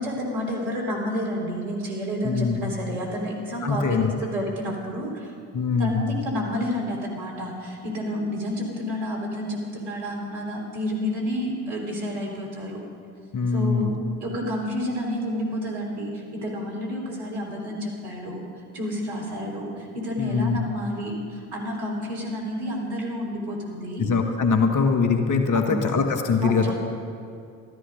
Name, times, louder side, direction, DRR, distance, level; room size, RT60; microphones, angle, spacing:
voice 1, 0.0-5.3 5.8-12.8 13.5-13.9 14.2-18.4 18.7-24.1 25.5-26.0 26.4-26.7, equal, 60° right, -1 dB, 3.4 m, -30 dB
voice 2, 2.2-2.7 3.6-4.1 5.5-6.2 13.3-13.9 20.2-20.6 24.0-26.7, left 5 dB, 45° left, 5 dB, 1.4 m, -22 dB
13.0 x 13.0 x 5.2 m, 2.4 s
figure-of-eight pair, 50°, 43 cm